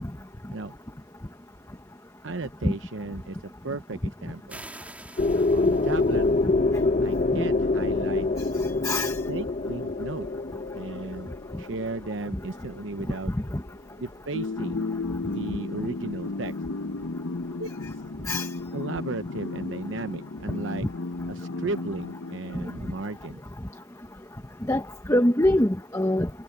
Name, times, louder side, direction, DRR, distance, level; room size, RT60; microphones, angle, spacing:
voice 1, 2.2-4.6 5.3-6.3 7.0-8.3 9.3-10.3 10.7-11.3 11.6-13.3 14.0-14.8 15.2-16.5 17.6-17.7 18.7-20.9 21.3-23.4, right 3 dB, 70° right, 0.9 m, -35 dB
sound 1, 4.5-6.5, right 1 dB, 10° right, 3.8 m, -46 dB
sound 2, 5.2-13.0, left 3 dB, 40° left, 0.8 m, -25 dB
voice 2, 8.8-9.2 13.3-13.6 18.3-18.5 22.5-22.6 24.7-24.8 25.1-26.3, left 1 dB, 15° left, 1.2 m, -23 dB
sound 3, 14.3-23.1, left 3 dB, 70° left, 0.8 m, -34 dB
head